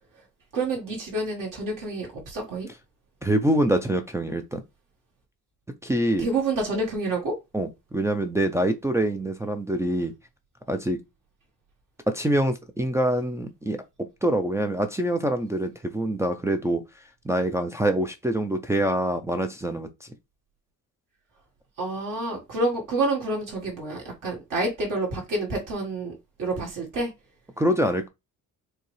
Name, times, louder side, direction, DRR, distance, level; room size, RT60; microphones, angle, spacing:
voice 1, 0.5-2.7 6.2-7.4 21.8-27.1, right 2 dB, 60° right, 1.6 m, -28 dB
voice 2, 3.2-4.6 5.8-6.3 7.5-10.1 10.7-11.0 12.1-16.8 17.2-20.1 27.6-28.1, right 1 dB, 10° right, 0.3 m, -25 dB
4.5 x 3.1 x 3.1 m
cardioid pair, 160°, 35 cm